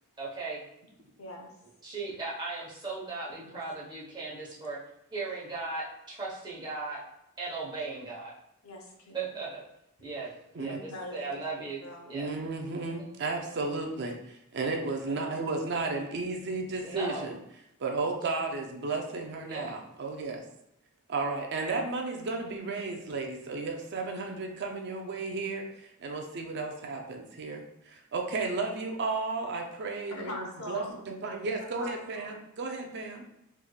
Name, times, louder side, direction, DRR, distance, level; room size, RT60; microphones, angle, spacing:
voice 1, 0.2-0.6 1.8-4.8 5.1-7.0 7.4-8.3 9.1-9.6 10.0-10.3 10.5-11.8 12.1-12.3 13.0-13.1 16.8-17.3 19.5-19.8, right 3 dB, 20° right, -6 dB, 1.0 m, -37 dB
voice 2, 1.2-1.5 3.4-3.7 8.6-9.3 10.7-12.1 15.1-15.4 18.3-18.5 30.1-31.0 31.8-32.4, left 1 dB, 75° left, 0 dB, 0.8 m, -43 dB
voice 3, 12.1-17.4 17.8-20.4 21.1-33.2, right 3 dB, 50° right, 2 dB, 0.5 m, -34 dB
3.5 x 3.3 x 2.3 m, 0.80 s
head